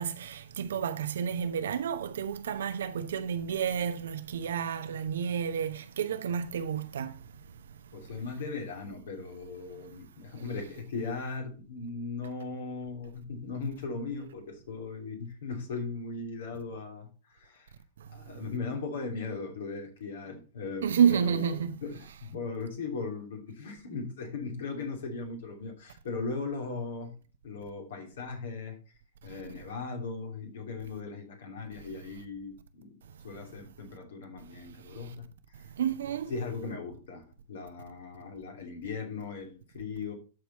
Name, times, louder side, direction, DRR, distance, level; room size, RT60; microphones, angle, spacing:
voice 1, 0.0-7.1 20.8-21.7 35.8-36.3, right 8 dB, 70° right, 0.9 m, -30 dB
voice 2, 7.9-17.7 18.1-27.1 27.4-28.8 29.2-33.0 33.2-35.7 36.3-40.1, left 4 dB, 65° left, 2.8 m, -38 dB
13.0 x 4.6 x 4.1 m
figure-of-eight pair, 100°, 0 cm